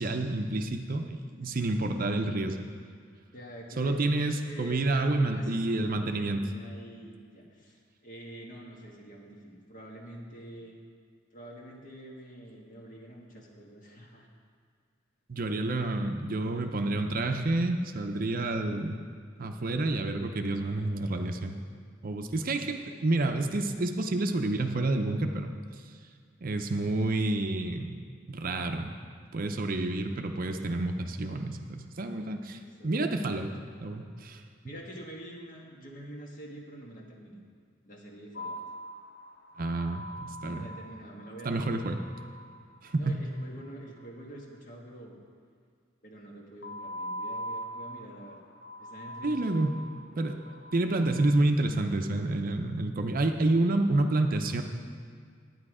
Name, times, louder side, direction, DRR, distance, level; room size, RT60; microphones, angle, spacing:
voice 1, 0.0-2.7 3.8-6.4 15.3-19.0 19.4-21.5 22.0-25.5 26.4-28.0 28.3-28.9 29.3-33.5 33.8-34.4 39.6-40.7 41.4-42.0 42.8-43.2 49.2-49.7 50.2-50.4 50.7-54.6, right 2 dB, 45° right, 5 dB, 0.6 m, -29 dB
voice 2, 3.3-10.7 11.3-14.3 32.4-33.1 34.6-37.4 37.8-38.6 40.4-41.8 42.9-45.2 46.0-48.4 48.8-49.6 50.1-50.5, right 1 dB, 45° left, -1 dB, 1.6 m, -47 dB
sound 1, 38.4-43.7 46.6-51.4, equal, 60° left, 0.8 m, -42 dB
10.0 x 9.4 x 4.9 m, 2.1 s
head